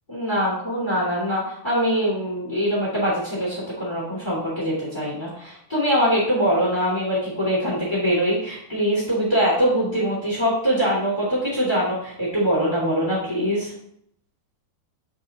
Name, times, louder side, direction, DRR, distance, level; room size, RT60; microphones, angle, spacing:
voice 1, 0.1-13.7, equal, 35° left, -6 dB, 0.7 m, -23 dB
9.9 x 3.5 x 2.8 m, 0.71 s
omnidirectional pair, 4.7 m